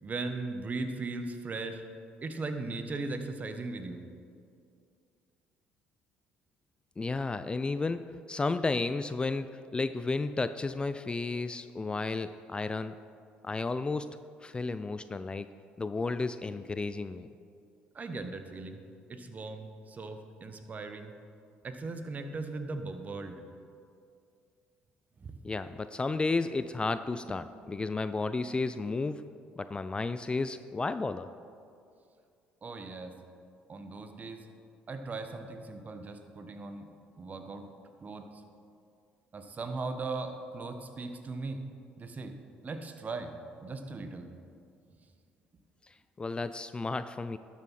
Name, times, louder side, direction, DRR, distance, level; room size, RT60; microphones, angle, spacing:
voice 1, 0.0-1.8 2.2-4.0 17.9-18.8 19.1-21.1 21.6-23.4 25.2-25.4 27.3-27.4 32.6-33.2 33.7-34.5 34.9-36.9 37.2-37.7 38.0-38.4 39.3-41.6 42.0-42.4 42.6-43.3 43.6-44.3, right 3 dB, 35° right, 7 dB, 1.0 m, -38 dB
voice 2, 7.0-13.0 13.4-15.5 15.8-17.3 25.4-31.3 45.8-47.4, left 3 dB, 20° left, 12 dB, 0.3 m, -33 dB
12.0 x 7.3 x 4.2 m, 2.4 s
hypercardioid pair, 65°, 4 cm